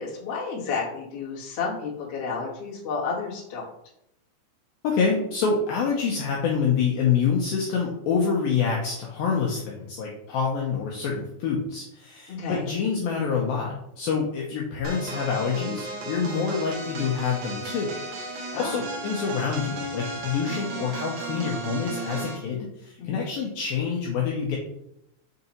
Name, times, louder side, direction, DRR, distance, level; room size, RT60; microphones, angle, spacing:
voice 1, 0.0-3.7 12.3-12.7 18.5-18.8 23.0-23.2, left 5 dB, 50° left, -5 dB, 1.9 m, -31 dB
voice 2, 4.8-18.0 18.2-24.6, left 6 dB, 80° left, -2 dB, 2.2 m, -27 dB
sound 1, 14.8-22.5, right 2 dB, 85° right, 1.5 m, -35 dB
6.8 x 3.9 x 4.2 m, 0.82 s
omnidirectional pair, 5.1 m